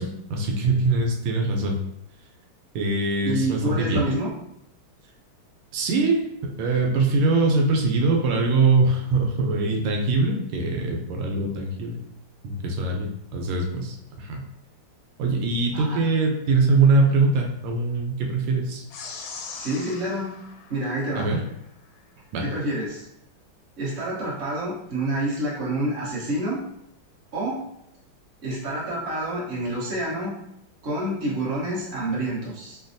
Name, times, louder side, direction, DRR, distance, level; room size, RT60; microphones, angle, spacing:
voice 1, 0.0-1.8 2.7-4.1 5.7-6.3 6.6-12.0 12.4-14.4 15.2-18.9 21.1-21.4 22.3-22.5, right 3 dB, 90° right, 1 dB, 1.5 m, -22 dB
voice 2, 3.3-4.3 15.7-16.0 19.6-20.3 20.7-21.4 22.4-23.0 23.8-26.6 27.3-27.6 28.4-30.3 30.8-32.8, right 1 dB, 40° right, -7 dB, 1.1 m, -28 dB
sound 1, 18.9-21.6, left 5 dB, 75° left, 1.2 m, -40 dB
4.2 x 2.2 x 2.6 m, 0.78 s
omnidirectional pair, 2.3 m